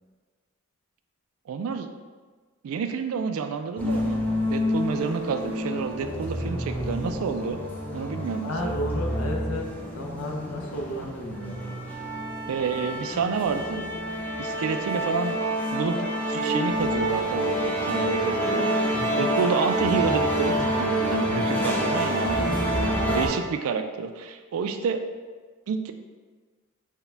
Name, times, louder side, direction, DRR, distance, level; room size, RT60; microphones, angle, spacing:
voice 1, 1.5-1.9 2.6-4.2 4.5-7.6 7.9-8.8 12.5-13.9 14.4-15.4 15.7-25.0 25.7-25.9, right 5 dB, 85° right, 8 dB, 0.3 m, -29 dB
sound 1, 3.8-23.3, equal, 10° left, 0.6 m, -27 dB
voice 2, 8.4-9.7 9.9-11.8, left 1 dB, 85° left, 1 dB, 0.6 m, -32 dB
4.6 x 2.2 x 3.3 m, 1.4 s
head